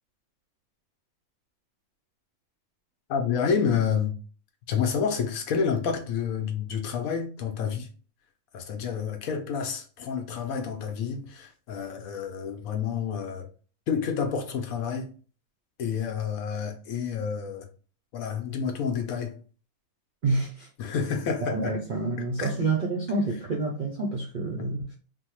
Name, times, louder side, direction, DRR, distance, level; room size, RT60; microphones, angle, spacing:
voice 1, 3.1-4.2 4.7-7.9 8.5-13.5 13.9-15.1 15.8-17.7 18.1-19.4 20.8-21.7 22.4-22.5 24.6-24.7, left 6 dB, 75° left, 1.1 m, -29 dB
voice 2, 20.2-20.7 21.5-24.9, right 3 dB, 60° right, 0.5 m, -28 dB
3.5 x 2.1 x 3.0 m
omnidirectional pair, 1.5 m